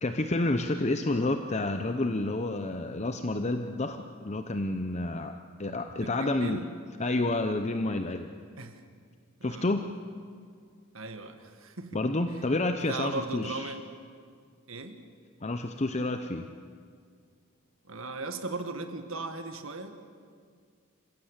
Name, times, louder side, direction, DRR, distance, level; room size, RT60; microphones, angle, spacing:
voice 1, 0.0-6.6 7.0-8.3 9.4-9.8 11.9-13.7 15.4-16.5, left 2 dB, 30° left, 7 dB, 0.8 m, -29 dB
voice 2, 5.9-6.7 8.6-8.8 9.4-9.7 10.9-12.0 12.9-13.8 14.7-15.0 17.9-20.1, right 3 dB, 65° right, 7 dB, 1.9 m, -37 dB
28.0 x 16.0 x 8.2 m, 2.1 s
head